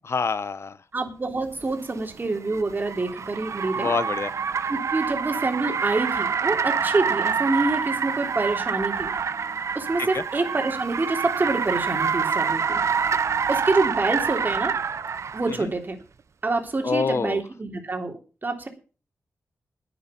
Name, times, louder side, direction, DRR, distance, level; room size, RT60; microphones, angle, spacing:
voice 1, 0.1-0.8 3.8-4.3 10.1-10.2 16.8-17.4, left 5 dB, 55° left, 0.6 m, -26 dB
voice 2, 0.9-3.9 4.7-9.1 9.7-12.8 13.5-14.7 15.3-16.0 16.4-18.7, right 3 dB, 35° right, 3.3 m, -26 dB
Car, 1.6-15.6, right 6 dB, 65° right, 0.8 m, -27 dB
10.0 x 9.4 x 7.1 m
wide cardioid pair, 90°, 5 cm